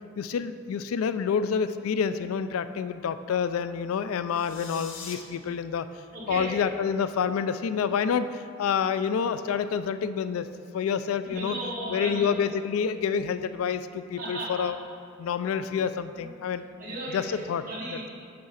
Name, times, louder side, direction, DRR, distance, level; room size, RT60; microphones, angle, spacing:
voice 1, 0.2-5.9 6.3-10.5 10.7-11.6 11.9-14.8 15.2-16.7 17.1-17.6, left 7 dB, 85° left, 12 dB, 0.3 m, -28 dB
sound 1, 4.3-5.2, left 6 dB, 65° left, 0.8 m, -42 dB
voice 2, 6.1-6.5 11.2-12.3 14.2-14.7 16.1-16.3 16.8-17.4 17.7-18.1, right 1 dB, 40° right, -6 dB, 2.1 m, -35 dB
7.7 x 4.7 x 5.6 m, 2.3 s
head